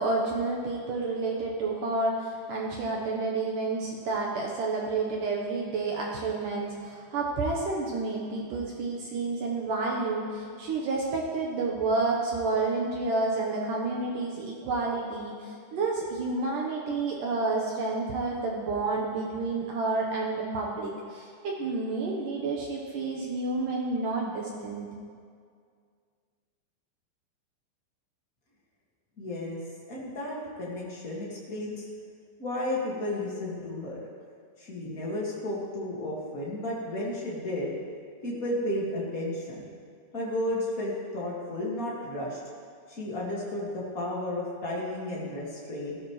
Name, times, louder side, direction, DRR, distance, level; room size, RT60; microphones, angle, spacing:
voice 1, 0.0-24.9, right 3 dB, 75° right, -2 dB, 1.9 m, -30 dB
voice 2, 29.2-29.6 29.9-31.9 32.4-34.0 34.6-37.7 38.2-39.7 40.1-42.4 42.9-46.0, left 1 dB, 80° left, -5 dB, 0.7 m, -33 dB
18.0 x 14.5 x 3.2 m, 2.2 s
omnidirectional pair, 5.3 m